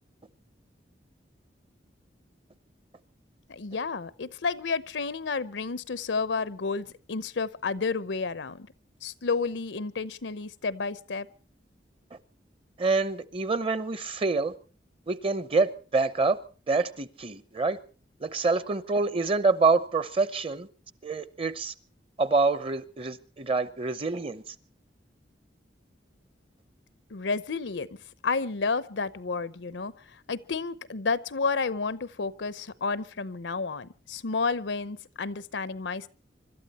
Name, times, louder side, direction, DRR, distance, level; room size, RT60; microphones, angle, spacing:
voice 1, 3.5-8.7 9.0-11.3 27.1-27.9 28.2-29.9 30.3-36.1, left 4 dB, 85° left, 0.8 m, -31 dB
voice 2, 12.8-14.5 15.1-16.4 16.7-17.8 18.2-20.7 21.0-21.7 22.2-24.5, right 3 dB, 30° right, 0.8 m, -26 dB
25.5 x 12.5 x 4.2 m
head